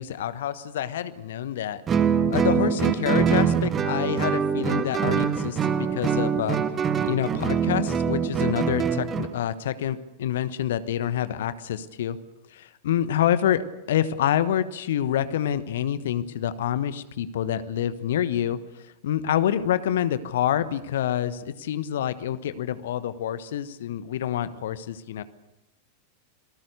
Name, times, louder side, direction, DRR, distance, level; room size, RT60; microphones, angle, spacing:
voice 1, 0.0-1.8 2.3-6.6 7.0-12.2 12.5-18.6 19.0-25.2, left 10 dB, 60° left, 14 dB, 1.2 m, -27 dB
Guitar, 1.9-9.3, right 7 dB, 25° right, 1.5 m, -24 dB
26.5 x 18.5 x 6.7 m, 0.94 s
figure-of-eight pair, 90°, 0 cm